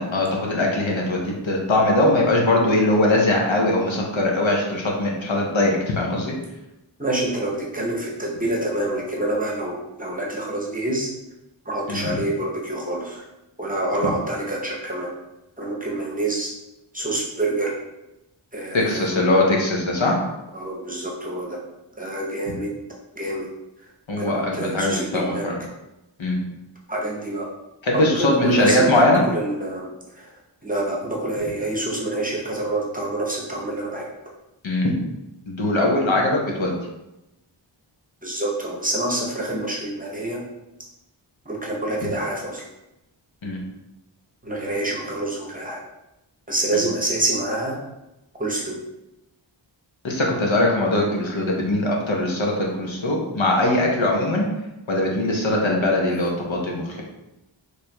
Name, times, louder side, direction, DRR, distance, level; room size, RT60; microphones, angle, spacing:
voice 1, 0.0-6.4 11.9-12.2 14.0-14.1 18.7-20.2 24.1-25.6 26.2-26.4 27.8-29.2 34.6-35.0 35.5-36.8 42.0-42.1 43.4-43.6 46.7-46.8 50.0-54.4 54.9-57.0, left 1 dB, 75° left, -1 dB, 0.9 m, -21 dB
voice 2, 7.0-11.1 11.7-13.2 13.6-15.1 15.6-16.5 16.9-17.7 18.5-19.2 20.5-21.6 22.0-22.7 23.1-23.5 24.2-25.4 26.9-27.5 27.9-30.3 30.6-34.1 38.2-40.4 41.4-42.7 44.4-45.8 46.5-47.8 48.4-48.8, right 2 dB, 20° right, -3 dB, 0.8 m, -27 dB
4.3 x 3.3 x 2.2 m, 0.93 s
wide cardioid pair, 70°, 47 cm